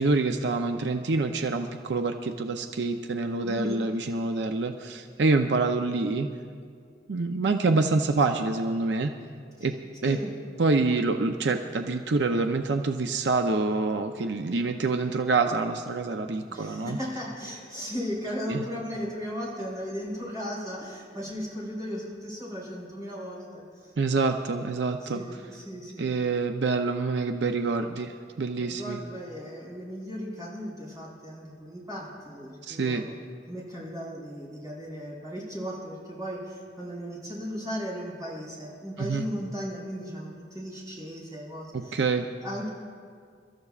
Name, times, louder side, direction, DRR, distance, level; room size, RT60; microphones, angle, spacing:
voice 1, 0.0-6.3 7.1-9.1 9.6-9.8 10.0-10.2 10.6-17.0 18.5-18.6 24.0-25.2 26.0-29.0 32.6-33.0 39.0-39.3 41.7-42.3, right 3 dB, 80° right, 6 dB, 0.6 m, -26 dB
voice 2, 3.4-3.9 9.6-9.7 10.0-10.3 16.5-23.9 25.0-26.1 28.6-33.2 33.5-42.1 42.4-42.7, equal, 20° right, -6 dB, 4.6 m, -36 dB
28.5 x 13.5 x 2.4 m, 2.2 s
head